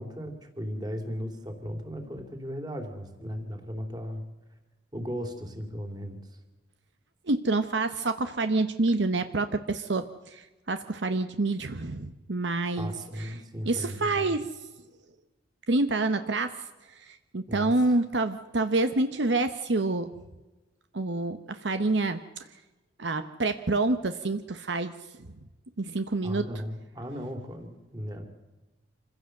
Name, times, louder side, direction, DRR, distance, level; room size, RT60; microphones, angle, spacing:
voice 1, 0.0-4.2 4.9-6.4 12.8-14.3 17.5-18.0 26.2-28.3, equal, 20° right, 5 dB, 2.9 m, -36 dB
voice 2, 7.3-12.9 13.2-13.3 13.6-14.5 15.7-16.6 16.9-20.1 20.9-22.2 23.0-24.9 25.8-26.4, right 2 dB, 65° right, 9 dB, 1.0 m, -27 dB
26.0 x 16.0 x 7.8 m, 1.1 s
head